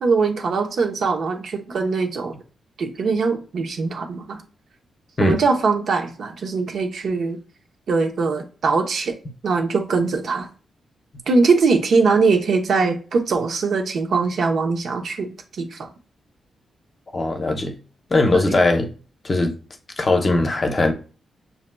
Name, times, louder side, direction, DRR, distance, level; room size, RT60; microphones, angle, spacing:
voice 1, 0.0-2.3 2.8-4.4 5.2-7.4 7.9-9.1 9.4-10.5 11.3-15.3 15.6-15.9 18.3-18.6, right 4 dB, 60° right, 0.8 m, -21 dB
voice 2, 17.1-17.8 18.1-18.9 19.2-19.5 20.0-20.9, left 2 dB, 30° left, 0.7 m, -19 dB
7.1 x 2.6 x 2.2 m
wide cardioid pair, 140°, 0 cm